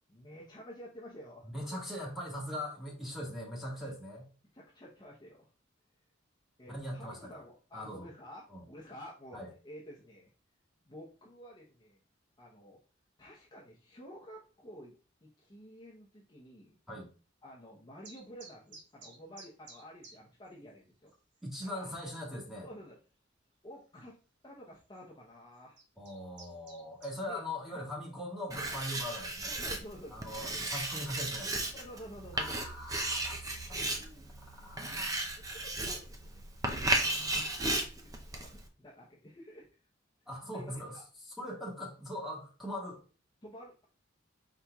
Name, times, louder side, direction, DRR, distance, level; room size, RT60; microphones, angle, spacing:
voice 1, 0.1-1.8 4.5-5.5 6.6-9.4 9.6-10.3 10.8-12.0 12.4-12.8 13.2-14.9 15.2-16.7 17.4-21.1 21.6-21.9 22.6-23.0 23.6-24.2 24.4-25.8 27.3-27.4 27.7-27.8 29.5-30.2 31.7-32.6 35.4-36.4 37.3-39.7 40.5-41.0 43.4-43.8, equal, 25° left, -4 dB, 0.8 m, -51 dB
voice 2, 1.5-4.3 6.7-7.3 7.7-8.1 8.5-8.6 9.3-9.5 16.9-17.1 21.4-22.7 26.0-29.5 30.1-31.7 32.3-35.3 37.3-37.7 40.3-43.0, left 1 dB, ahead, -3 dB, 1.5 m, -41 dB
sound 1, 18.0-20.2 20.4-20.5 21.1-21.2 21.4-21.9 22.4-22.5 23.9-24.0 24.8-25.0 25.5-27.2, right 3 dB, 60° right, 1.2 m, -53 dB
Writing, 28.5-38.7, right 2 dB, 20° right, 0.6 m, -35 dB
5.0 x 4.3 x 2.3 m, 0.36 s
head